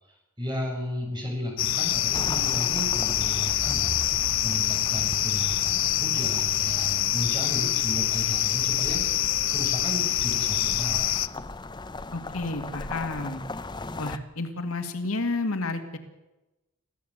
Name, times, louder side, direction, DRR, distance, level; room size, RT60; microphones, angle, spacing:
voice 1, 0.4-3.9 4.4-11.2, equal, 20° right, -1 dB, 7.3 m, -34 dB
sound 1, 1.6-11.3, left 12 dB, 65° left, 0.8 m, -25 dB
sound 2, 2.1-8.6 9.7-14.2, left 2 dB, 20° left, 0.6 m, -39 dB
voice 2, 12.1-13.4 14.0-16.0, left 2 dB, 80° left, 6 dB, 2.1 m, -31 dB
25.0 x 15.5 x 7.9 m, 1.0 s
head